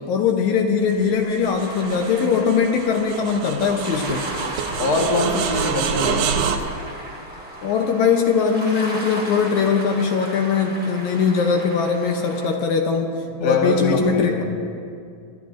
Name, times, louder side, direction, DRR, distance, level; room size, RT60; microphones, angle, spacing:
voice 1, 0.1-4.3 7.6-13.1 13.4-14.4, left 6 dB, 75° left, 3 dB, 2.0 m, -21 dB
sound 1, 0.9-6.6, right 7 dB, 75° right, 1.6 m, -27 dB
sound 2, 1.6-12.5, right 1 dB, 10° right, 0.4 m, -36 dB
voice 2, 4.8-6.3 13.4-14.4, left 2 dB, 45° left, 0 dB, 1.3 m, -23 dB
26.5 x 12.5 x 2.5 m, 2.4 s
omnidirectional pair, 3.7 m